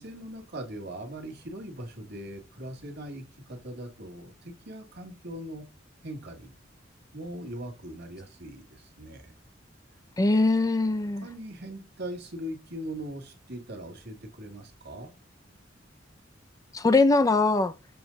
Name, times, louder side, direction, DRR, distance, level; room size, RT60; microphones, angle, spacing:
voice 1, 0.0-5.6 6.0-6.5 7.1-9.3 11.2-15.1, right 1 dB, 60° right, 1.6 m, -40 dB
voice 2, 10.2-11.3 16.7-17.7, left 3 dB, 20° left, 0.3 m, -22 dB
7.0 x 3.1 x 5.1 m
head